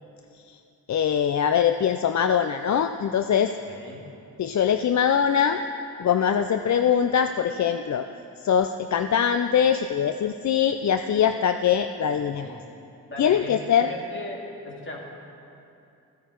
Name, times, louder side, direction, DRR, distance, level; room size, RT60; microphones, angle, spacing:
voice 1, 0.9-3.5 4.4-5.6 6.0-8.1 8.4-12.5 13.2-13.9, left 8 dB, 45° left, 8 dB, 0.5 m, -22 dB
voice 2, 3.7-4.1 12.1-12.7 13.1-15.0, left 1 dB, 30° left, -2 dB, 2.7 m, -38 dB
15.0 x 10.0 x 4.6 m, 2.7 s
cardioid pair, 60°, 39 cm